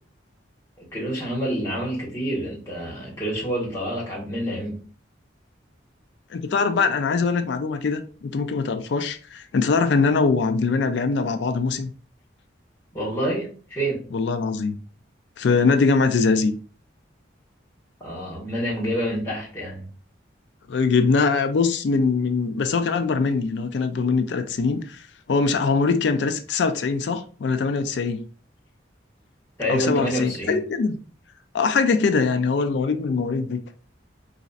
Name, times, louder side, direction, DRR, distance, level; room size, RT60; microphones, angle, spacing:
voice 1, 0.8-4.8 12.9-14.0 18.0-19.9 29.6-30.6, right 1 dB, 15° left, 1.4 m, -28 dB
voice 2, 6.3-11.9 14.1-14.8 15.4-16.5 20.7-25.0 25.3-28.2 29.7-31.0 31.5-33.6, left 4 dB, 65° left, 0.4 m, -22 dB
4.0 x 2.5 x 2.4 m
head